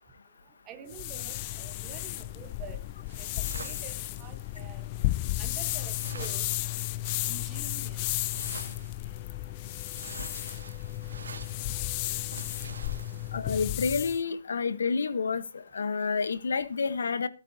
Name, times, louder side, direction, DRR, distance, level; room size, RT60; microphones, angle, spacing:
voice 1, 0.7-2.8 3.2-3.3 3.5-4.9 5.4-6.5 7.3-8.0, right 8 dB, 15° right, 1.3 m, -47 dB
sound 1, 0.9-14.2, left 17 dB, 25° left, 0.6 m, -33 dB
sound 2, 1.5-2.2 3.1-4.6 5.3-5.4 5.6-7.2 7.9-9.3 9.5-13.6, right 4 dB, 75° right, 2.7 m, -47 dB
Wind instrument woodwind instrument, 9.1-13.7, left 10 dB, 5° left, 3.5 m, -58 dB
voice 2, 13.3-17.3, left 5 dB, 70° left, 1.2 m, -29 dB
22.0 x 8.8 x 2.8 m
hypercardioid pair, 160°, 0 cm